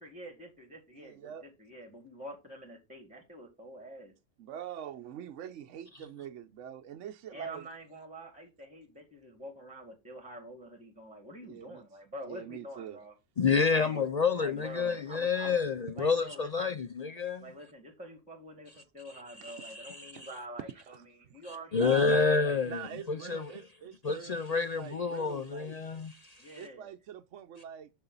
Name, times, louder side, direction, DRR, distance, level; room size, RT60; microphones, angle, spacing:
voice 1, 0.0-4.1 7.3-13.2 13.7-14.0 14.4-15.6 15.9-16.8 17.4-22.0 22.4-22.6 26.4-26.9, equal, 5° right, 1.7 m, -47 dB
voice 2, 1.0-1.5 4.4-7.7 11.4-11.9 12.3-13.0 13.4-13.7 13.9-14.1 19.4-19.5 20.1-20.3 20.9-21.0 21.3-21.4 21.7-22.2 22.7-25.7 26.6-27.9, right 9 dB, 75° right, 1.0 m, -44 dB
voice 3, 13.4-17.4 19.4-20.3 21.7-22.8 23.1-23.4 24.0-26.5, left 5 dB, 65° left, 0.4 m, -29 dB
6.9 x 6.6 x 3.9 m
omnidirectional pair, 1.3 m